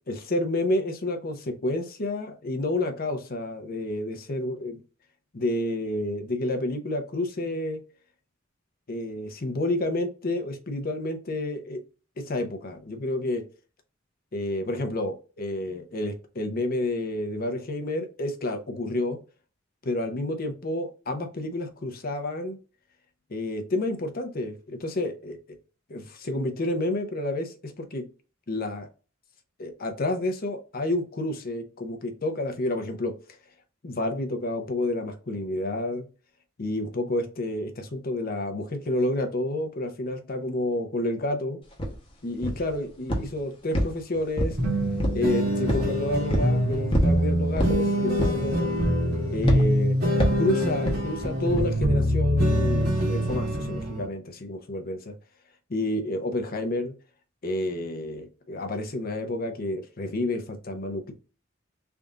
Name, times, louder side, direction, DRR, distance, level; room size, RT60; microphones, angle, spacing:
voice 1, 0.1-4.8 5.3-7.8 8.9-11.8 12.2-13.4 14.3-19.2 19.8-22.6 23.3-25.4 25.9-28.0 28.5-28.9 29.6-33.1 33.8-36.1 36.6-41.6 42.2-44.6 45.1-48.7 49.3-50.0 50.4-55.1 55.7-56.9 57.4-61.1, left 1 dB, 50° left, 6 dB, 0.7 m, -29 dB
sound 1, 41.8-41.9 42.4-42.7 43.1-43.4 43.7-44.6 45.0-45.3 45.7-45.9 46.3-46.5 46.9-47.2 47.6-47.8 48.2-48.5 48.8-49.1 49.5-49.7 50.2-50.5 50.9-51.0 51.6-51.7, equal, 30° left, 0.9 m, -25 dB
sound 2, 44.6-54.0, equal, 55° right, 1.6 m, -24 dB
3.4 x 2.6 x 3.7 m, 0.35 s
head